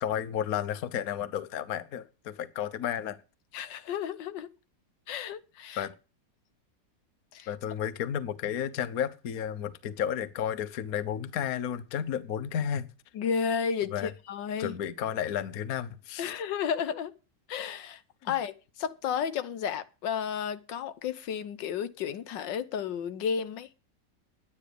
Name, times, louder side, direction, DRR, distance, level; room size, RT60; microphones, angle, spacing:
voice 1, 0.0-3.2 5.8-5.9 7.5-12.9 13.9-14.1 14.6-16.3 18.2-18.4, left 9 dB, 55° left, 1.3 m, -32 dB
voice 2, 3.5-4.5 5.1-5.9 7.3-7.5 13.1-14.7 16.2-17.1 17.5-23.7, left 7 dB, 80° left, 1.6 m, -32 dB
11.0 x 9.7 x 6.8 m
omnidirectional pair, 2.0 m